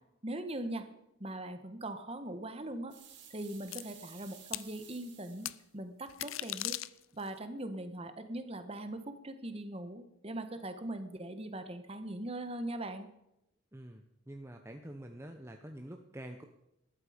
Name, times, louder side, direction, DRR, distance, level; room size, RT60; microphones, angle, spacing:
voice 1, 0.2-0.8 1.2-3.0 3.3-6.8 7.1-13.1, right 1 dB, 30° right, 9 dB, 1.4 m, -40 dB
sound 1, 2.9-5.7, right 8 dB, 55° right, 3.9 m, -55 dB
sound 2, 3.7-3.8 4.5-4.7 5.5-5.6 6.1-7.3, left 15 dB, 80° left, 0.6 m, -38 dB
voice 2, 13.7-16.4, right 1 dB, 15° right, 4 dB, 0.9 m, -47 dB
19.5 x 13.0 x 5.2 m, 0.86 s
head